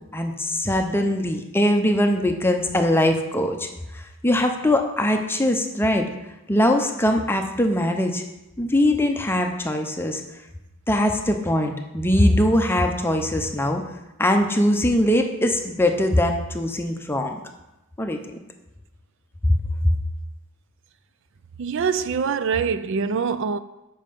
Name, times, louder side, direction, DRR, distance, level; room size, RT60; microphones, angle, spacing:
voice 1, 0.1-3.7 3.9-6.0 6.5-8.2 8.6-10.2 10.9-13.8 14.2-17.4 18.0-18.2 19.5-20.0, left 1 dB, 10° left, 0.6 m, -21 dB
voice 2, 21.6-23.6, right 6 dB, 60° right, 0.4 m, -24 dB
7.4 x 5.5 x 5.2 m
head